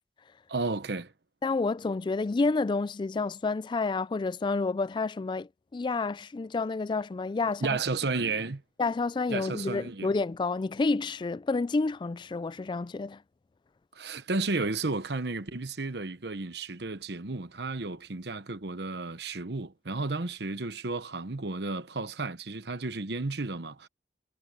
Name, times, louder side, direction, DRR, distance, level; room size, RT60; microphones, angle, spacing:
voice 1, 0.5-1.1 7.6-8.6 9.3-10.1 13.9-23.9, right 3 dB, 65° right, 1.1 m, -33 dB
voice 2, 1.4-7.8 8.8-13.2, left 3 dB, 25° left, 0.3 m, -29 dB
head